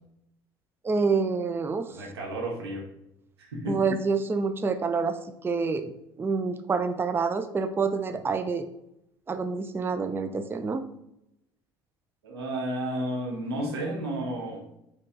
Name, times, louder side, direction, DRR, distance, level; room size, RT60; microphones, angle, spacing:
voice 1, 0.8-1.9 3.7-5.2 5.4-5.9 6.2-8.7 9.3-10.8, right 4 dB, 15° right, 8 dB, 0.4 m, -27 dB
voice 2, 1.9-2.8 3.4-3.8 8.1-8.2 12.2-14.6, right 1 dB, 90° right, -1 dB, 1.2 m, -32 dB
4.4 x 3.1 x 3.7 m, 0.83 s
hypercardioid pair, 65°, 13 cm